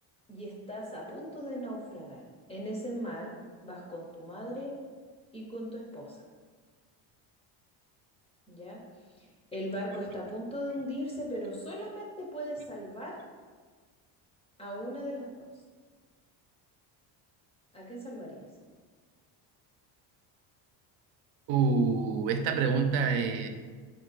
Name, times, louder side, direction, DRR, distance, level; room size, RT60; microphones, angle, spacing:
voice 1, 0.3-2.2 2.5-3.3 3.6-4.7 5.3-6.2 8.5-8.8 9.2-13.1 14.6-15.5 17.7-18.5, equal, 15° left, -3 dB, 0.4 m, -38 dB
voice 2, 21.5-23.5, right 5 dB, 85° right, 6 dB, 0.6 m, -26 dB
4.5 x 2.6 x 3.9 m, 1.5 s
cardioid pair, 165°, 45 cm